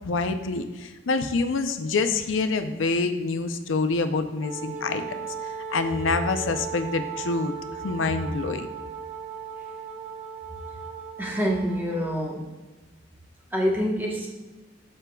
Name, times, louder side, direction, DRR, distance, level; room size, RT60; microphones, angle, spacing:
voice 1, 0.0-5.0 5.4-8.7, left 3 dB, 90° left, 8 dB, 0.5 m, -26 dB
Wind instrument woodwind instrument, 4.4-12.4, right 6 dB, 35° right, 0.4 m, -37 dB
voice 2, 11.2-12.5 13.5-14.3, equal, 10° right, -2 dB, 1.1 m, -26 dB
13.0 x 4.5 x 2.3 m, 1.3 s
head